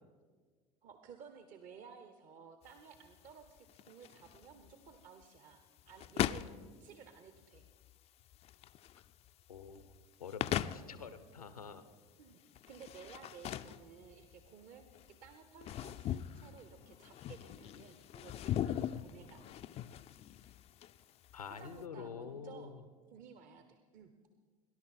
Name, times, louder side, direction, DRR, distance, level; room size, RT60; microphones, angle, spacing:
voice 1, 0.8-7.7 12.2-12.4 12.7-19.6 21.5-22.7 23.1-24.1, right 6 dB, 45° right, 7 dB, 1.0 m, -55 dB
sound 1, 2.6-21.8, left 11 dB, 35° left, 0.4 m, -41 dB
voice 2, 9.5-9.9 10.2-11.8 21.3-22.8, left 6 dB, 85° left, 12 dB, 0.8 m, -47 dB
19.0 x 11.0 x 4.3 m, 1.5 s
figure-of-eight pair, 70°, 19 cm